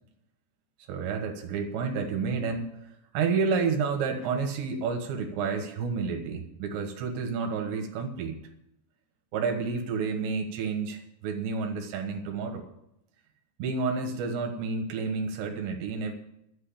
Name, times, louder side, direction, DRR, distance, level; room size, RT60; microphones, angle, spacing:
voice 1, 0.9-8.4 9.3-12.7 13.6-16.1, right 5 dB, 75° right, 5 dB, 3.4 m, -30 dB
12.5 x 8.1 x 8.6 m, 0.81 s
omnidirectional pair, 5.2 m